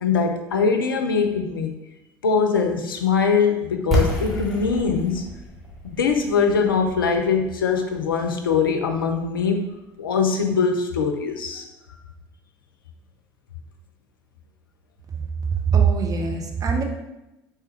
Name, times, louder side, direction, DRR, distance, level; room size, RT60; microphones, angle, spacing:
voice 1, 0.0-1.7 2.2-5.2 5.8-9.6 10.0-11.6, left 5 dB, 80° left, 4 dB, 0.4 m, -22 dB
sound 1, 3.9-9.6, equal, ahead, 1.2 m, -29 dB
voice 2, 15.5-16.8, right 6 dB, 30° right, 2 dB, 0.6 m, -21 dB
3.3 x 3.3 x 3.2 m, 0.94 s
figure-of-eight pair, 65°, 11 cm